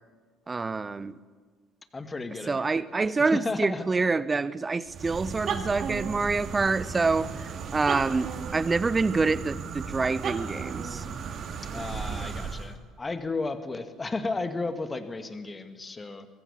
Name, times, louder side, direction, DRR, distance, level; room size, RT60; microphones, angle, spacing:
voice 1, 0.5-1.2 2.5-7.4 7.7-11.0, right 4 dB, 20° right, 19 dB, 0.9 m, -26 dB
voice 2, 1.9-3.9 11.6-16.3, left 3 dB, 20° left, 9 dB, 2.1 m, -34 dB
sound 1, 4.9-12.7, right 6 dB, 45° right, 2.2 m, -35 dB
23.5 x 23.0 x 7.3 m, 1.5 s
figure-of-eight pair, 55°, 0 cm